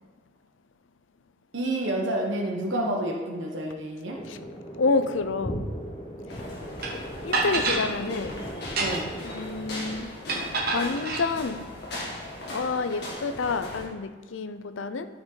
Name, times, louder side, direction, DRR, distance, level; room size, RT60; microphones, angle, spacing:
voice 1, 1.5-4.2 7.5-8.1 8.8-9.1, right 1 dB, 80° right, 0 dB, 1.1 m, -30 dB
sound 1, 4.1-9.3, equal, 30° left, 1.0 m, -38 dB
voice 2, 4.8-5.6 7.3-8.4 9.3-10.1 10.7-11.6 12.5-15.1, left 4 dB, 85° left, 11 dB, 0.6 m, -28 dB
sound 2, 6.3-13.9, left 1 dB, 60° left, 2.0 m, -38 dB
sound 3, 6.8-6.9 7.3-7.9 8.6-9.2 10.3-11.3, right 3 dB, 50° right, 1.4 m, -27 dB
11.5 x 5.1 x 3.9 m, 1.4 s
head